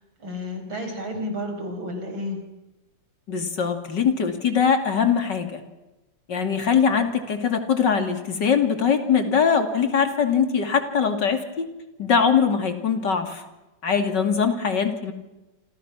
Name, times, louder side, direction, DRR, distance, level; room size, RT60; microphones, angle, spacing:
voice 1, 0.2-2.4, left 1 dB, 85° right, 5 dB, 5.7 m, -31 dB
voice 2, 3.3-5.6 6.3-11.7 12.0-13.4 13.8-15.1, left 6 dB, 60° left, 7 dB, 3.1 m, -22 dB
28.0 x 27.0 x 6.2 m, 1.0 s
omnidirectional pair, 2.1 m